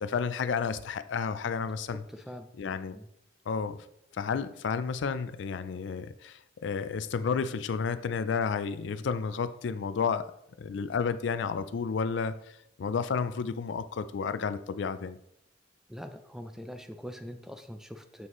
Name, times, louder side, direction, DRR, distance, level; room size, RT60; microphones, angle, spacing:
voice 1, 0.0-2.0 2.6-3.0 3.5-3.8 4.1-10.3 10.6-15.2, left 5 dB, 65° left, 13 dB, 0.4 m, -31 dB
voice 2, 1.9-2.5 2.9-3.1 15.9-18.3, equal, 5° right, 8 dB, 0.4 m, -43 dB
7.0 x 6.1 x 3.1 m, 0.78 s
head